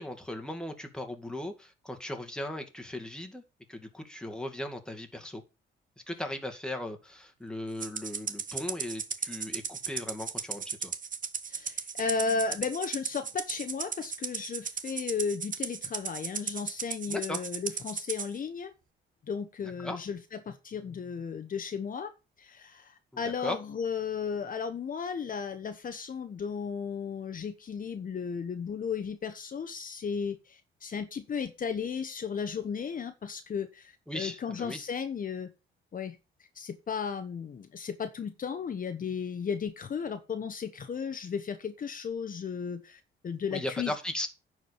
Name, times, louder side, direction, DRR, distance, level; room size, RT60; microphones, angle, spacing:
voice 1, 0.0-3.4 3.7-5.4 6.1-10.9 17.1-17.4 19.6-20.0 23.1-23.6 34.1-34.8 43.5-44.3, left 1 dB, 5° left, 4 dB, 2.2 m, -37 dB
Rattle (instrument), 7.8-18.3, right 6 dB, 40° right, 1.2 m, -36 dB
voice 2, 11.5-18.7 19.3-22.1 22.4-35.5 35.9-36.2 36.5-43.9, left 6 dB, 45° left, 8 dB, 1.1 m, -35 dB
10.0 x 4.9 x 6.9 m, 0.29 s
cardioid pair, 90°, 20 cm